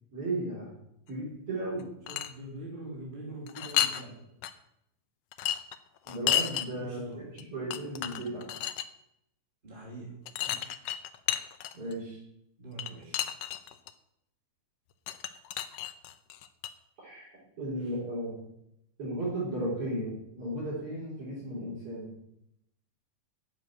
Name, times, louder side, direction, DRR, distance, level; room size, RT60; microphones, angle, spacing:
voice 1, 0.1-0.7 1.1-1.9 6.0-8.5 11.7-12.2 17.0-18.4 19.0-22.1, right 1 dB, 50° right, -8 dB, 4.9 m, -35 dB
sound 1, 1.8-2.3 3.5-4.0 4.4-4.5 5.3-6.7 7.4-7.5 7.7-8.9 10.3-11.9 12.8-13.9 15.1-16.7, left 11 dB, 75° left, 1.6 m, -31 dB
voice 2, 2.1-4.2 6.7-7.3 9.6-10.2 12.6-13.2 17.8-17.9, right 1 dB, 20° right, -3 dB, 2.6 m, -43 dB
9.6 x 7.6 x 8.7 m, 0.80 s
omnidirectional pair, 3.3 m